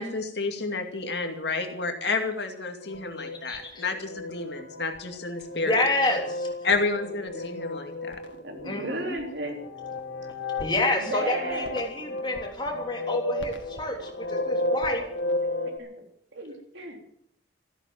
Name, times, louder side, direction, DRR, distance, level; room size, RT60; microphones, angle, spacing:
voice 1, 0.0-5.8 6.6-8.2, left 3 dB, 65° left, 5 dB, 2.3 m, -30 dB
sound 1, 2.8-15.8, left 2 dB, 85° left, 2.1 m, -34 dB
voice 2, 3.4-3.8 5.5-6.5 8.6-9.2 10.6-15.0, left 2 dB, 25° left, 1 dB, 3.2 m, -28 dB
voice 3, 8.4-9.6 11.0-11.8 15.8-15.9 16.3-17.0, right 1 dB, 75° right, 3 dB, 3.5 m, -34 dB
14.5 x 12.5 x 7.6 m, 0.71 s
head